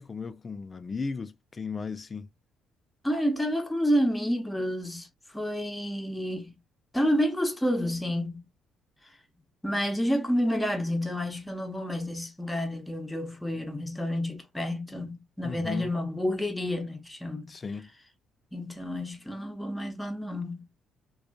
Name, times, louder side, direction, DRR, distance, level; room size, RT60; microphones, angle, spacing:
voice 1, 0.0-2.3 15.4-15.9 17.5-17.9, left 5 dB, 35° left, 0.4 m, -36 dB
voice 2, 3.0-5.1 5.3-6.5 6.9-8.4 9.6-17.5 18.5-20.6, equal, 10° left, 0.9 m, -29 dB
2.4 x 2.3 x 2.2 m
supercardioid pair, 80°, 0 cm